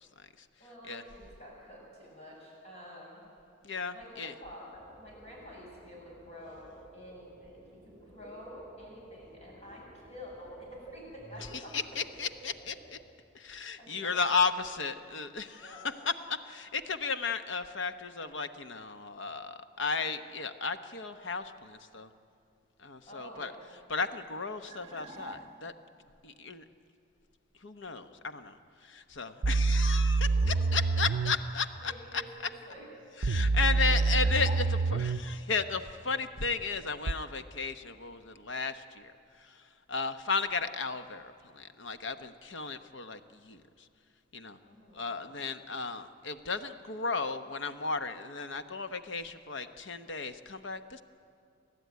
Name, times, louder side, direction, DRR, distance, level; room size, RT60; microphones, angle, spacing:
voice 1, 0.0-0.5 0.9-1.0 3.6-4.3 11.5-13.0 13.3-22.1 22.8-23.5 23.9-25.7 26.2-26.6 27.6-32.2 33.2-43.9 44.3-44.6 44.9-51.0, left 4 dB, 65° left, 9 dB, 1.0 m, -34 dB
voice 2, 0.6-3.2 3.9-11.7 13.8-14.3 15.5-15.8 23.1-23.6 30.2-30.8 31.8-32.9 33.5-34.2 34.5-34.6 44.6-45.1, equal, 35° left, -3 dB, 7.5 m, -49 dB
sound 1, 4.7-13.0, right 2 dB, 5° right, 3.9 m, -53 dB
sound 2, 24.7-25.9 33.9-35.2, equal, 35° right, 1.3 m, -47 dB
sound 3, 29.4-31.4 33.2-35.2 37.1-37.2, right 3 dB, 65° right, 0.6 m, -26 dB
30.0 x 12.5 x 9.4 m, 2.5 s
head